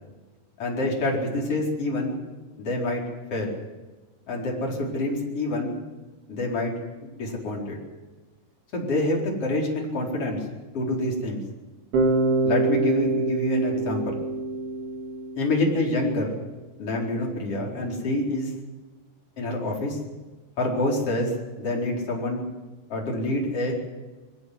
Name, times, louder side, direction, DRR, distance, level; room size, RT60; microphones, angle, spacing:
voice 1, 0.6-2.2 2.6-3.0 3.3-3.5 4.3-5.8 6.3-6.7 7.0-7.8 8.7-10.5 10.7-11.4 12.4-14.2 15.4-16.4 16.8-18.5 19.4-20.0 20.6-21.3 21.6-22.4 22.9-23.7, left 1 dB, 35° left, -1 dB, 5.1 m, -27 dB
Bass guitar, 11.9-16.0, right 3 dB, 80° right, 6.7 m, -25 dB
22.0 x 19.0 x 8.2 m, 1.2 s
omnidirectional pair, 5.2 m